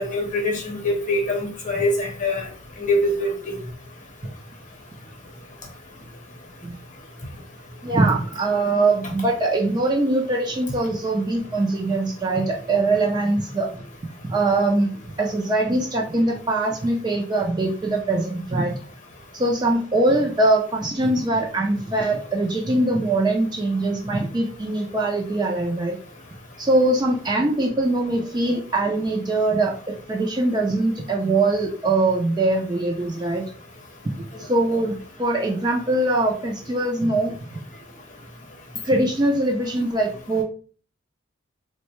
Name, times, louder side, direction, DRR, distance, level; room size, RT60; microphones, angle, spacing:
voice 1, 0.0-2.4 2.8-3.5, left 1 dB, 40° left, 2 dB, 0.8 m, -23 dB
voice 2, 7.8-13.8 14.2-18.8 19.3-26.0 26.6-33.5 34.4-37.6 38.8-40.4, right 2 dB, 20° right, 0 dB, 0.3 m, -22 dB
3.5 x 2.1 x 3.0 m, 0.41 s
head